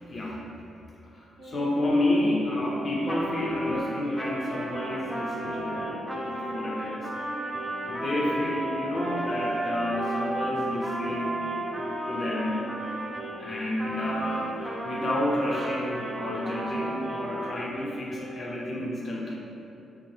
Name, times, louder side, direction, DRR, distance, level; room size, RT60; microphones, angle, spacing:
voice 1, 0.1-0.5 1.0-7.3 7.9-11.4 12.0-12.7 13.4-19.4, left 1 dB, 45° left, -3 dB, 0.6 m, -30 dB
sound 1, 1.4-18.4, equal, 65° left, 1.4 m, -40 dB
Trumpet, 3.1-13.3 13.8-17.6, right 1 dB, 15° right, 0.4 m, -34 dB
2.9 x 2.2 x 3.1 m, 2.8 s
hypercardioid pair, 45°, 0 cm